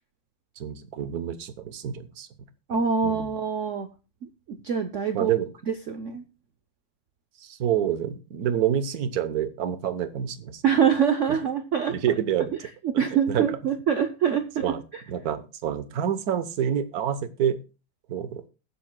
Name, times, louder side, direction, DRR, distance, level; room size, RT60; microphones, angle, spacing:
voice 1, 0.6-2.3 3.0-3.3 5.1-5.5 7.4-10.6 11.3-11.4 11.9-12.5 13.3-13.5 14.6-14.8 15.1-17.6 18.1-18.4, right 9 dB, 55° right, 12 dB, 1.2 m, -27 dB
voice 2, 2.7-3.9 4.5-5.3 5.7-6.2 10.6-12.0 12.8-15.0, right 7 dB, 85° right, 8 dB, 0.6 m, -25 dB
20.5 x 7.4 x 2.2 m, 0.32 s
omnidirectional pair, 2.2 m